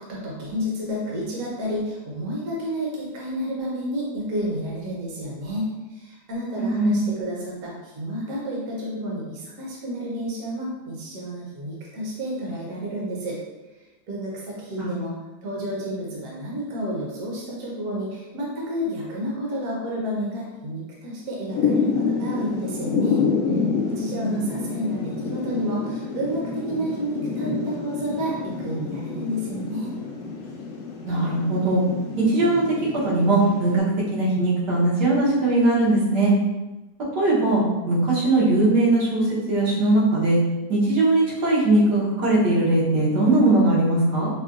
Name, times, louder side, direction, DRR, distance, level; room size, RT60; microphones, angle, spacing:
voice 1, 0.0-13.4 14.1-15.2 15.4-23.2 23.8-29.9, equal, 60° right, -4 dB, 1.2 m, -30 dB
voice 2, 6.6-7.0 14.8-14.9 24.1-24.4 31.1-31.8 32.3-32.7 33.0-33.8 34.1-36.3 37.2-39.2 39.5-40.4 40.7-44.3, right 2 dB, 80° right, -7 dB, 1.7 m, -20 dB
Thunder / Rain, 21.5-33.8, left 5 dB, 65° left, 0.7 m, -28 dB
5.4 x 2.2 x 2.4 m, 1.1 s
omnidirectional pair, 1.8 m